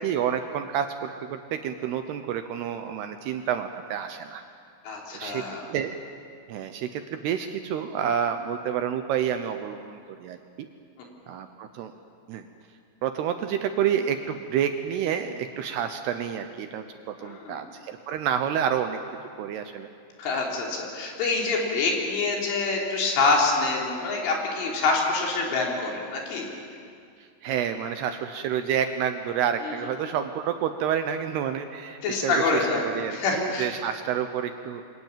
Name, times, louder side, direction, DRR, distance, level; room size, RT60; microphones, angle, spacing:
voice 1, 0.0-4.4 5.1-5.4 5.7-6.0 6.5-10.4 11.3-11.9 12.3-12.5 13.0-16.8 17.2-19.0 19.4-19.9 27.2-34.8, right 9 dB, 75° right, 7 dB, 2.5 m, -29 dB
voice 2, 4.9-5.7 17.2-17.6 20.2-26.5 29.6-29.8 32.0-32.8 33.1-33.7, left 3 dB, 80° left, -1 dB, 6.0 m, -26 dB
28.0 x 23.5 x 7.4 m, 2.4 s
omnidirectional pair, 5.5 m